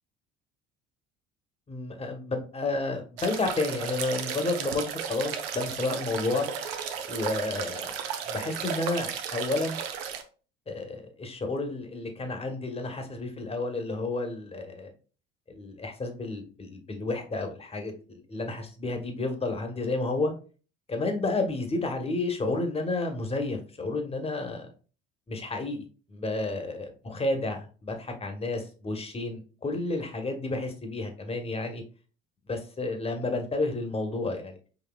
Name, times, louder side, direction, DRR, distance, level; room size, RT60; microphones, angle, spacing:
voice 1, 1.7-6.5 7.1-8.0 8.3-9.8 10.7-14.9 15.5-20.3 20.9-24.7 25.3-31.8 32.5-34.6, left 2 dB, 20° left, 5 dB, 1.1 m, -31 dB
sound 1, 3.2-10.2, right 7 dB, 80° right, 0.6 m, -34 dB
6.2 x 2.6 x 2.3 m, 0.37 s
hypercardioid pair, 70°, 29 cm